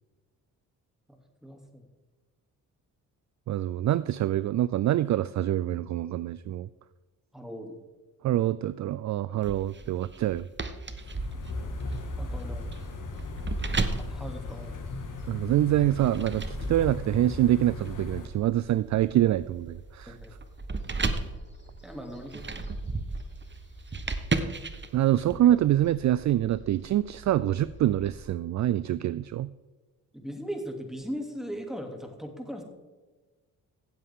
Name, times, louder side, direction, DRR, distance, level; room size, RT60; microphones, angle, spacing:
voice 1, 1.1-1.8 7.3-7.8 11.3-11.4 12.2-12.9 14.1-14.8 16.8-17.0 20.1-20.3 21.8-22.5 25.1-25.6 30.1-32.6, equal, ahead, 4 dB, 2.7 m, -39 dB
voice 2, 3.5-6.7 8.2-10.4 15.3-20.2 24.9-29.5, right 13 dB, 45° right, 17 dB, 0.4 m, -25 dB
sound 1, 9.4-15.2 15.8-25.4, right 3 dB, 25° right, 1.2 m, -35 dB
sound 2, 10.9-18.3, left 2 dB, 50° left, 2.0 m, -37 dB
sound 3, 11.7-28.3, right 2 dB, 25° left, 3.3 m, -52 dB
16.0 x 7.8 x 3.7 m, 1.3 s
hypercardioid pair, 50°, 40 cm